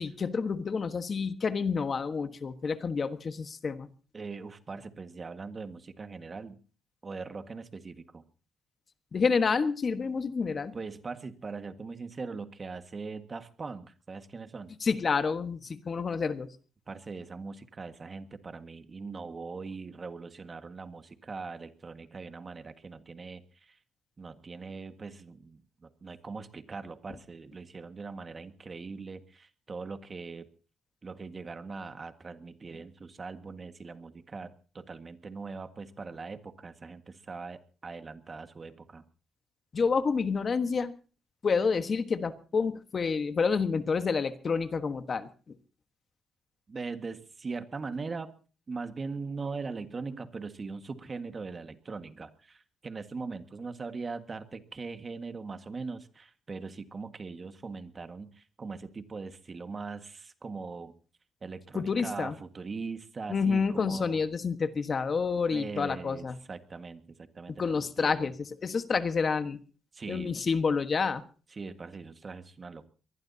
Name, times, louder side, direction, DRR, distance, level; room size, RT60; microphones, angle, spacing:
voice 1, 0.0-3.9 9.1-10.7 14.8-16.5 39.7-40.9 41.4-45.5 61.7-62.3 63.3-66.3 67.6-69.6 70.1-71.2, left 5 dB, 40° left, 10 dB, 1.4 m, -29 dB
voice 2, 4.1-6.6 7.0-8.2 10.7-14.7 16.9-23.8 24.2-30.5 31.0-39.0 46.7-48.3 48.7-60.9 61.4-64.2 65.5-68.3 69.9-70.4 71.5-72.9, right 4 dB, 35° right, 8 dB, 1.7 m, -41 dB
23.5 x 19.5 x 2.8 m, 0.38 s
cardioid pair, 90°, 0 cm